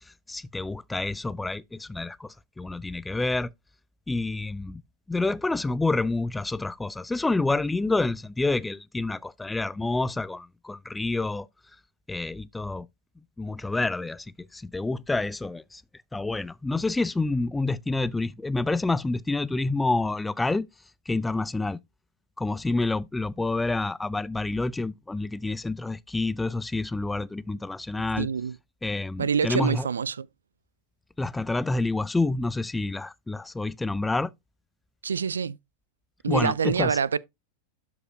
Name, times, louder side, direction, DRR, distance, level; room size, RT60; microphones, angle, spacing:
voice 1, 0.3-3.5 4.1-4.8 5.1-11.5 12.1-12.9 13.4-14.3 14.5-15.8 16.1-20.7 21.1-21.8 22.4-28.3 28.8-29.9 31.2-34.3 36.3-37.0, left 2 dB, 10° left, 0.3 m, -28 dB
voice 2, 28.2-28.6 29.2-30.3 35.0-35.6 36.2-37.2, right 6 dB, 70° right, 0.3 m, -26 dB
12.5 x 4.8 x 2.4 m
figure-of-eight pair, 90°, 0 cm